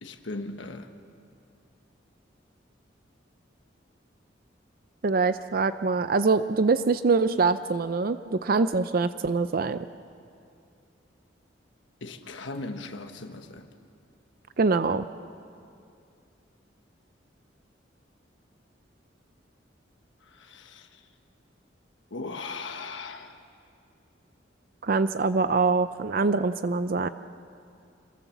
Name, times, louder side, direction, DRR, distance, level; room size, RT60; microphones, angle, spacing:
voice 1, 0.0-0.9 12.0-13.7 20.2-21.1 22.1-23.4, left 3 dB, 80° left, 5 dB, 1.3 m, -38 dB
voice 2, 5.0-9.9 14.6-15.0 24.8-27.1, right 4 dB, 50° right, 12 dB, 0.5 m, -24 dB
27.0 x 21.5 x 7.1 m, 2.5 s
head